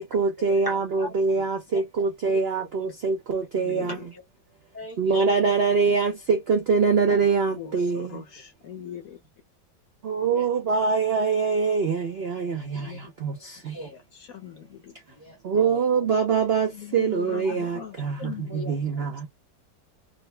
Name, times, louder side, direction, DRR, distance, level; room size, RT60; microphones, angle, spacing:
voice 1, 0.0-4.0 5.0-8.2 10.0-13.9 15.4-19.3, right 5 dB, 65° right, 0.6 m, -24 dB
voice 2, 0.6-1.1 1.7-1.8 2.8-2.9 4.1-4.2 4.7-5.2 8.8-9.1 10.3-10.5 13.3-13.5 13.7-14.0 15.1-16.0 17.5-17.6 18.5-18.7, left 1 dB, 15° right, 0.9 m, -39 dB
voice 3, 3.5-4.1 5.9-6.0 7.5-9.2 12.5-13.1 13.6-13.7 14.1-14.9 16.7-18.7 19.0-19.1, left 9 dB, 60° left, 1.0 m, -41 dB
3.9 x 2.1 x 3.2 m
omnidirectional pair, 2.0 m